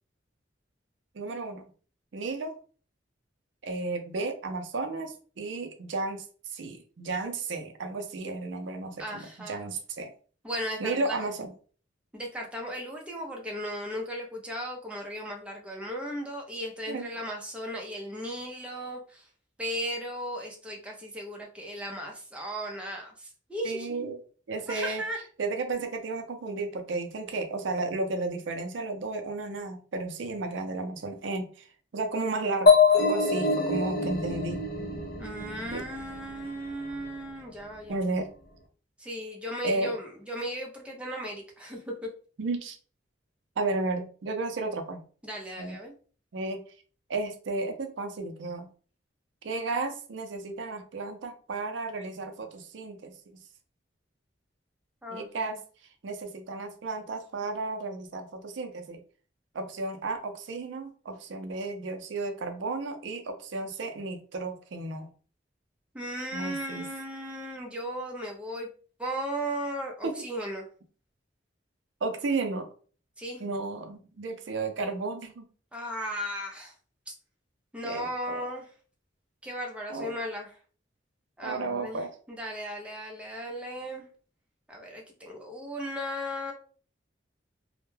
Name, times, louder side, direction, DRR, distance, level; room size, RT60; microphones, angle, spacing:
voice 1, 1.1-1.6 2.1-2.6 3.6-6.2 6.5-10.1 10.8-11.5 16.9-17.2 23.6-24.2 24.5-25.0 25.4-31.7 31.9-34.7 35.7-35.9 37.9-38.3 39.6-39.9 42.4-42.8 43.6-45.0 45.6-45.8 46.3-46.6 47.1-48.7 49.4-53.1 55.1-55.6 56.0-59.0 59.5-65.1 66.3-66.9 70.0-70.2 72.0-72.7 73.4-75.5 77.8-78.4 79.9-80.1 81.4-82.1, right 3 dB, 80° right, 6 dB, 0.5 m, -33 dB
voice 2, 9.0-9.6 10.4-11.2 12.1-19.3 19.6-24.1 24.7-25.2 35.2-38.0 39.0-42.1 45.2-45.9 55.0-55.3 65.9-68.7 69.0-70.7 73.2-73.4 75.7-76.7 77.1-77.2 77.7-78.7 79.4-80.5 81.4-82.0 82.3-84.1 84.7-86.5, equal, 5° right, -1 dB, 0.5 m, -36 dB
sound 1, 32.7-36.3, left 4 dB, 55° left, 0.5 m, -24 dB
2.1 x 2.1 x 3.1 m, 0.41 s
head